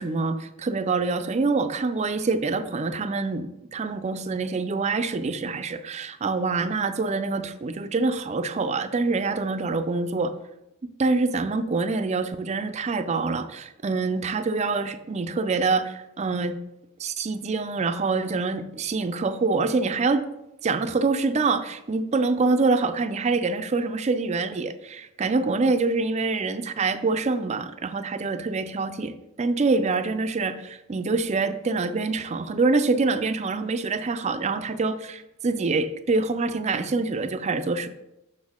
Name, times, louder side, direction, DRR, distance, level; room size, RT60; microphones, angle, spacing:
voice 1, 0.0-10.3 11.0-16.6 17.0-20.3 20.6-37.9, right 3 dB, 35° right, 10 dB, 0.4 m, -25 dB
6.5 x 6.2 x 3.6 m, 0.91 s
head